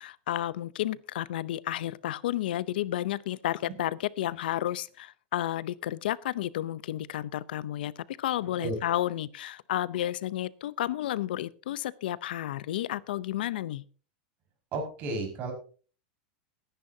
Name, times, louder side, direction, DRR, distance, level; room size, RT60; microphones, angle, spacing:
voice 1, 0.0-13.8, left 13 dB, 85° left, 0.7 m, -32 dB
voice 2, 14.7-15.5, right 2 dB, 35° right, 5.4 m, -32 dB
19.5 x 10.0 x 2.8 m
supercardioid pair, 155°, 5 cm